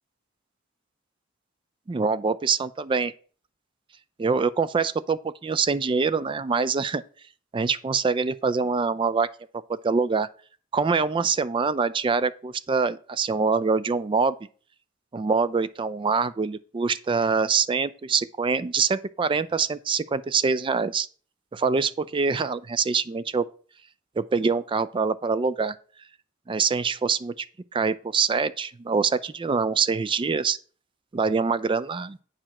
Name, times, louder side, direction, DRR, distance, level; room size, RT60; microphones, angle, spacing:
voice 1, 1.9-3.1 4.2-7.0 7.5-9.3 9.8-10.3 10.7-14.4 15.1-21.1 21.5-23.5 24.2-25.7 26.5-27.5 27.7-30.6 31.1-32.2, right 5 dB, 25° right, 0.3 m, -24 dB
8.7 x 4.9 x 5.8 m
head